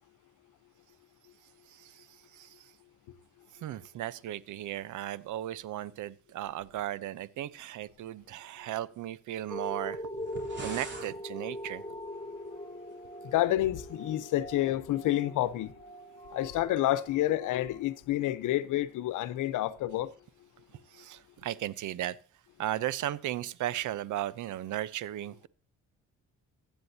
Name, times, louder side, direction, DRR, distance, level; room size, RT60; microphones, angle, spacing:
voice 1, 1.7-2.1 2.3-2.7 3.6-10.0 10.6-11.8 20.9-22.2 22.6-25.5, right 13 dB, 80° right, 0.9 m, -36 dB
sound 1, 9.5-18.4 19.0-19.1, equal, 20° left, 1.3 m, -42 dB
sound 2, 10.2-11.1, right 4 dB, 35° right, 3.6 m, -42 dB
voice 2, 13.2-15.7 16.3-20.1, left 14 dB, 85° left, 1.0 m, -29 dB
16.0 x 9.2 x 2.8 m
cardioid pair, 90°, 30 cm